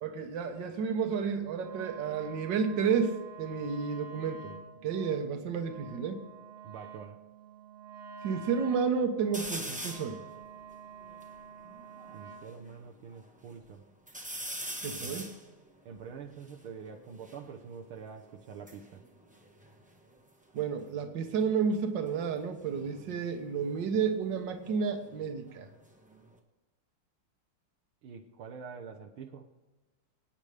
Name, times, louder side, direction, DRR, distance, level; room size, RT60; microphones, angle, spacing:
voice 1, 0.0-4.5 4.8-6.2 8.2-10.2 14.8-15.3 20.5-25.7, right 6 dB, 60° right, 6 dB, 1.8 m, -31 dB
Wind instrument woodwind instrument, 1.6-12.6, right 6 dB, 30° right, 1.5 m, -48 dB
voice 2, 6.6-7.2 12.1-13.8 15.0-15.3 15.9-19.0 28.0-29.5, right 6 dB, 75° right, 1 dB, 1.8 m, -46 dB
sound 1, 9.3-10.2 10.7-10.8 11.0-12.6 13.1-13.7 14.1-17.4 18.4-20.3 20.6-21.0 22.6-25.2 25.6-26.4, right 1 dB, 5° right, 0.8 m, -44 dB
25.5 x 9.1 x 3.4 m, 1.2 s
omnidirectional pair, 2.4 m